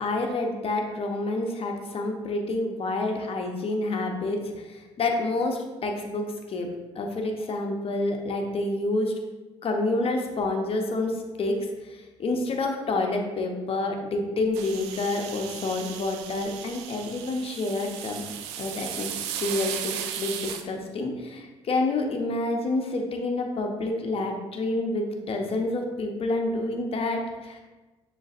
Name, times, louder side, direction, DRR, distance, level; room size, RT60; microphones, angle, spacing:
voice 1, 0.0-6.7 6.9-9.1 9.6-11.6 11.8-18.2 18.6-19.1 19.4-27.6, left 2 dB, 40° left, 3 dB, 0.8 m, -28 dB
sound 1, 14.5-20.6, right 9 dB, 75° right, 0.4 m, -36 dB
6.3 x 3.3 x 2.5 m, 1.2 s
hypercardioid pair, 50°, 14 cm